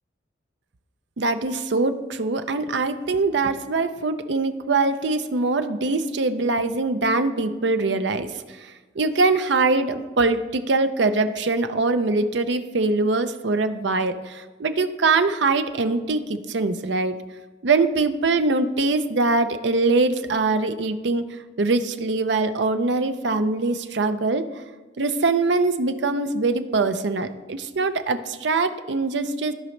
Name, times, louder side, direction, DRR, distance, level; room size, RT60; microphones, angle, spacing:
voice 1, 1.2-17.2 17.6-21.3 21.6-24.4 25.0-29.5, right 3 dB, 70° right, 9 dB, 0.6 m, -23 dB
15.5 x 5.2 x 3.2 m, 1.3 s
head